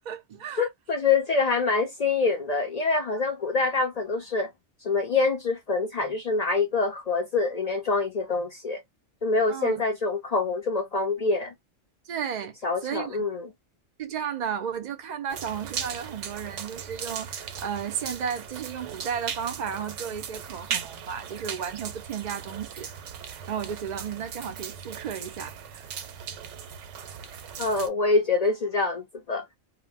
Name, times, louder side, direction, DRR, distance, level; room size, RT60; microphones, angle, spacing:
voice 1, 0.0-0.7 9.5-9.8 12.1-12.6 12.8-13.2 14.0-22.9 23.3-25.8, right 8 dB, 55° right, 0.5 m, -34 dB
voice 2, 0.6-4.5 4.8-8.8 9.2-11.5 12.6-13.5 27.6-29.4, left 3 dB, 65° left, 0.4 m, -25 dB
sound 1, 15.3-27.9, right 7 dB, 90° right, 0.9 m, -38 dB
2.1 x 2.0 x 3.3 m
omnidirectional pair, 1.2 m